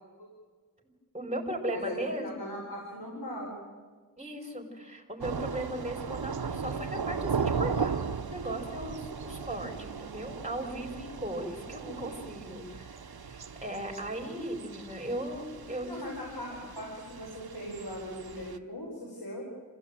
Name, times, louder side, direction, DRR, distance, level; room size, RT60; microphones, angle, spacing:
voice 1, 1.1-2.4 4.2-16.1, right 1 dB, 20° right, 2 dB, 4.8 m, -37 dB
voice 2, 2.2-3.6 15.9-19.4, left 1 dB, 85° left, -2 dB, 5.1 m, -39 dB
Thunder / Rain, 5.2-18.6, right 5 dB, 85° right, 1.0 m, -37 dB
27.0 x 16.0 x 9.1 m, 1.5 s
wide cardioid pair, 60°, 36 cm